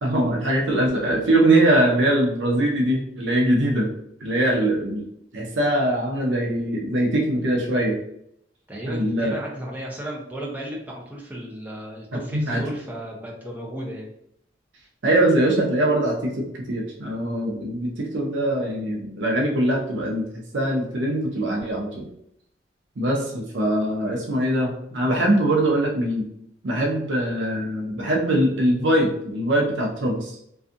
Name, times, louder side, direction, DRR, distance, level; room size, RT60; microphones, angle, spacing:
voice 1, 0.0-3.9 4.2-5.1 5.3-8.0 8.9-9.4 12.3-12.7 15.0-20.3 20.5-22.0 23.0-26.3 26.6-30.4, right 1 dB, 70° right, -1 dB, 0.6 m, -22 dB
voice 2, 8.7-14.1, equal, 10° right, -2 dB, 0.6 m, -34 dB
2.5 x 2.3 x 2.5 m, 0.74 s
head